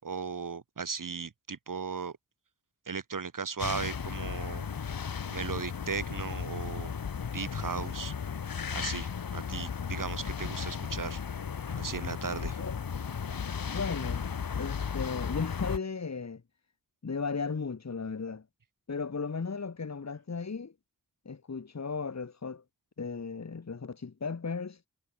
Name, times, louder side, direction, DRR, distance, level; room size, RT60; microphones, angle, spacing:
voice 1, 0.0-2.2 2.9-4.7 5.3-6.9 7.3-8.1 8.7-11.2 11.7-12.6, right 5 dB, 65° right, 4.0 m, -36 dB
sound 1, 3.6-15.8, left 6 dB, 80° left, 2.7 m, -35 dB
voice 2, 11.8-12.8 13.7-14.2 14.6-16.4 17.0-18.4 18.9-20.7 21.2-22.6 23.0-24.8, left 5 dB, 50° left, 2.6 m, -36 dB
wide cardioid pair, 70°, 34 cm